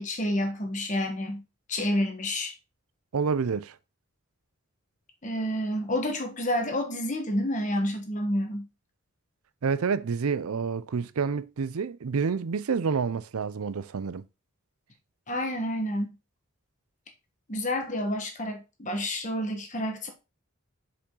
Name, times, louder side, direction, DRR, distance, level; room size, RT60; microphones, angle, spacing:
voice 1, 0.0-1.4 1.7-2.5 5.2-8.7 15.3-16.1 17.5-20.1, left 1 dB, 35° left, 1.3 m, -29 dB
voice 2, 3.1-3.8 9.6-14.2, right 5 dB, 80° right, 0.5 m, -28 dB
6.8 x 5.2 x 3.8 m
head